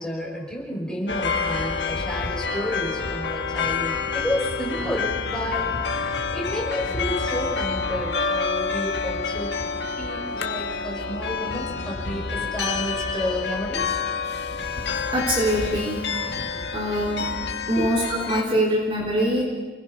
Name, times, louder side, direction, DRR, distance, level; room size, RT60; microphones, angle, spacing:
voice 1, 0.0-9.6 9.9-14.0 17.7-17.9, equal, 5° left, -3 dB, 5.7 m, -31 dB
sound 1, 1.1-18.4, left 5 dB, 80° left, 1.6 m, -28 dB
voice 2, 15.1-16.3 16.7-17.3 17.7-19.4, equal, 30° right, -2 dB, 3.4 m, -24 dB
29.5 x 20.5 x 5.5 m, 1.3 s
head